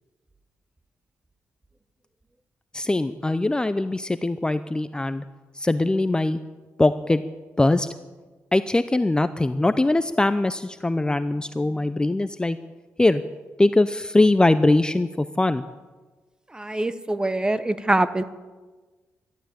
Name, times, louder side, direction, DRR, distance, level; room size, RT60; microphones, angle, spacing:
voice 1, 2.7-5.2 5.6-6.4 6.8-7.2 7.6-7.9 8.5-12.6 13.0-13.2 13.6-15.6, left 2 dB, 15° left, 12 dB, 0.6 m, -21 dB
voice 2, 16.5-18.2, right 2 dB, 15° right, 13 dB, 1.0 m, -24 dB
13.5 x 12.0 x 8.7 m, 1.3 s
cardioid pair, 85°, 5 cm